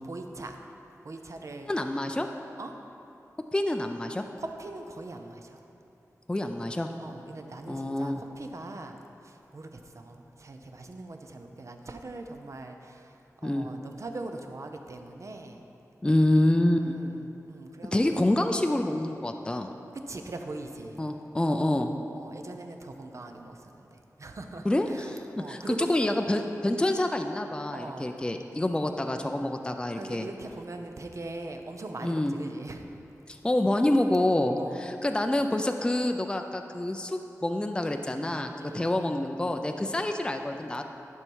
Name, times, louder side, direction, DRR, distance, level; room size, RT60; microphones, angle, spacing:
voice 1, 0.0-0.6 1.0-1.7 2.6-2.7 4.4-5.6 7.0-13.2 13.4-15.6 16.7-18.3 20.1-21.0 21.5-21.7 22.1-25.1 25.4-25.9 27.7-28.1 29.9-32.9 34.6-34.9 38.6-38.9 39.8-39.9, right 2 dB, 55° right, 4 dB, 0.7 m, -41 dB
voice 2, 1.7-2.3 3.5-4.2 6.3-6.9 7.7-8.2 13.4-13.7 16.0-17.0 17.9-19.7 21.0-21.9 24.6-25.2 25.5-30.3 32.0-32.3 33.3-40.8, left 1 dB, 15° left, 5 dB, 0.4 m, -27 dB
11.0 x 5.4 x 4.7 m, 2.8 s
wide cardioid pair, 75°, 6 cm